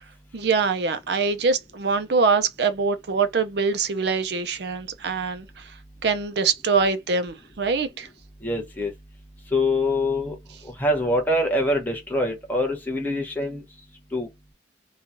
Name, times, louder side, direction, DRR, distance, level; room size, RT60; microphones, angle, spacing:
voice 1, 0.3-5.5 6.0-8.1, right 4 dB, 60° right, 0.5 m, -23 dB
voice 2, 8.4-8.9 9.5-10.3 10.8-13.6 14.1-14.3, left 1 dB, 10° left, 0.8 m, -24 dB
3.0 x 2.3 x 2.5 m
head